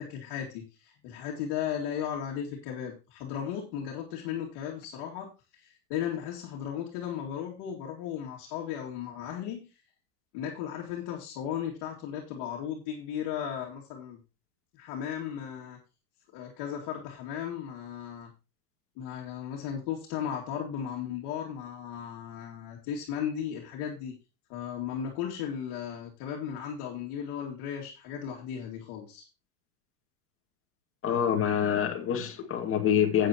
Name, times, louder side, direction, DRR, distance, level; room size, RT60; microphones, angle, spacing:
voice 1, 0.0-9.7 10.3-14.2 14.7-15.8 16.3-18.3 19.0-24.1 24.5-29.3, left 9 dB, 50° left, 2.4 m, -36 dB
voice 2, 31.0-33.3, left 9 dB, 25° left, 2.1 m, -26 dB
12.5 x 8.8 x 3.0 m
supercardioid pair, 125°, 48 cm